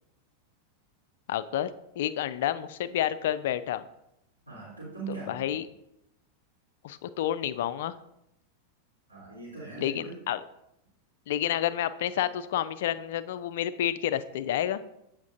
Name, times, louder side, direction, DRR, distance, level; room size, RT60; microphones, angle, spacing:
voice 1, 1.3-1.7 2.0-3.8 5.3-5.7 6.8-7.9 9.8-10.4 11.3-14.8, left 11 dB, 55° left, 14 dB, 0.3 m, -29 dB
voice 2, 4.5-5.6 9.1-10.2, right 4 dB, 85° right, -8 dB, 2.6 m, -40 dB
8.1 x 5.8 x 2.5 m, 0.83 s
figure-of-eight pair, 90°, 0 cm